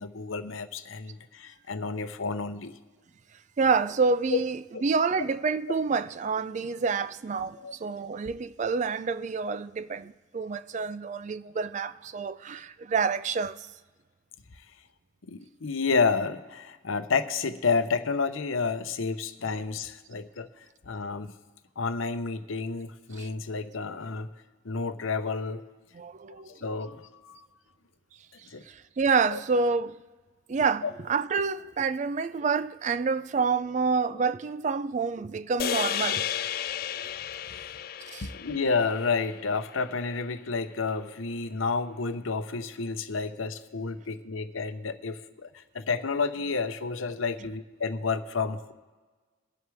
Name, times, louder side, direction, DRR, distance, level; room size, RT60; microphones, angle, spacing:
voice 1, 0.0-2.8 4.3-4.4 4.7-4.8 5.2-5.3 7.6-7.7 15.3-20.5 20.9-21.3 21.8-24.3 24.6-25.6 26.5-27.4 28.5-28.6 29.3-29.4 30.8-30.9 37.5-37.8 38.2-48.7, left 4 dB, 80° left, 0.7 m, -30 dB
voice 2, 3.6-13.7 23.2-23.3 26.0-26.6 28.7-30.0 30.5-36.3 38.1-38.3, right 5 dB, 35° right, 0.3 m, -28 dB
sound 1, 35.6-40.0, left 10 dB, 45° left, 0.3 m, -33 dB
23.0 x 7.9 x 3.5 m
head